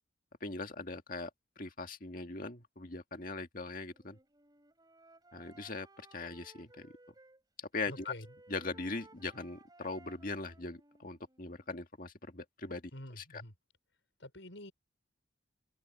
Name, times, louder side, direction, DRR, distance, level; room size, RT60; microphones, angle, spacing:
voice 1, 0.4-1.3 1.6-4.2 5.3-5.9 6.1-6.9 7.7-8.1 8.5-12.8 13.1-13.4, left 3 dB, 50° left, 2.0 m, -40 dB
Wind instrument woodwind instrument, 3.9-7.4 7.7-11.7, right 2 dB, 20° right, 5.2 m, -60 dB
voice 2, 7.9-8.3 12.9-13.5 14.2-14.7, left 1 dB, 90° left, 6.1 m, -47 dB
open air
head